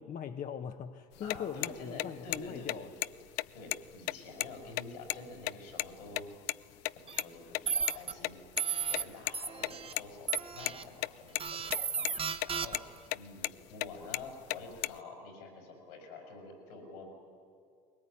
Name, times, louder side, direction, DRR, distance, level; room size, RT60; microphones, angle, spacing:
voice 1, 0.0-2.9, left 8 dB, 45° left, 7 dB, 1.0 m, -41 dB
voice 2, 1.2-3.1 3.5-6.3 6.9-8.4 8.9-12.1 12.5-12.8 13.1-17.1, left 3 dB, 85° left, 3 dB, 5.8 m, -48 dB
sound 1, 1.2-6.2 6.5-6.6 6.9-7.0 7.2-7.3 7.5-7.6 7.9-8.0 8.2-9.3 9.6-10.1 10.3-11.1 11.4-11.8 12.0-12.5 12.7-12.8 13.1-13.5 13.8-15.0, left 19 dB, 65° left, 0.5 m, -33 dB
sound 2, 7.1-7.2 7.7-8.1 8.6-9.0 9.3-9.9 10.3-10.8 11.4-13.0, right 6 dB, 30° right, 1.1 m, -34 dB
21.5 x 18.5 x 9.8 m, 2.4 s
hypercardioid pair, 70°, 19 cm